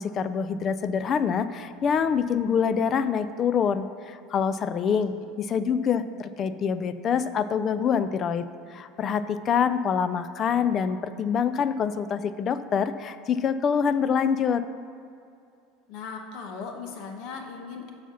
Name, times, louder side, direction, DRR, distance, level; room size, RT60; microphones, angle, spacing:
voice 1, 0.0-5.1 5.4-14.6, left 7 dB, 35° left, 13 dB, 0.4 m, -25 dB
voice 2, 15.9-17.9, left 5 dB, 55° left, 3 dB, 1.2 m, -38 dB
7.4 x 5.6 x 5.7 m, 2.5 s
supercardioid pair, 140°, 0 cm